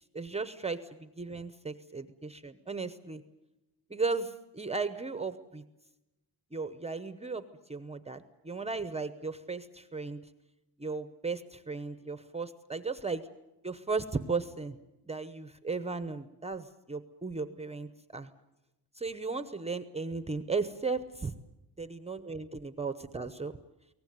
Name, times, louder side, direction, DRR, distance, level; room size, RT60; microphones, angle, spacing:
voice 1, 0.1-3.2 3.9-5.6 6.5-10.2 10.8-13.2 13.6-14.8 15.1-18.3 19.0-21.3 21.8-23.5, right 4 dB, 15° right, 11 dB, 0.8 m, -36 dB
23.0 x 18.5 x 9.4 m, 0.97 s
wide cardioid pair, 155°, 40 cm